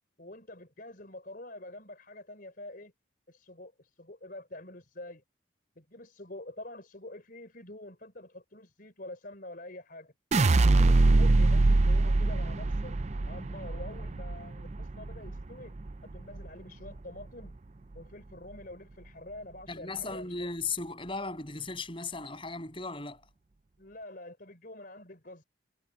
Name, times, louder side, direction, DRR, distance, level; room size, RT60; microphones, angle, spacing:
voice 1, 0.2-2.9 3.3-5.2 5.8-10.1 10.6-13.0 13.3-15.7 16.0-17.5 17.9-20.5 23.8-25.4, left 1 dB, 45° left, 4.5 m, -46 dB
sound 1, 10.3-16.5 16.9-17.5, right 2 dB, 35° right, 0.5 m, -24 dB
voice 2, 19.7-23.2, left 4 dB, 25° left, 7.9 m, -36 dB
head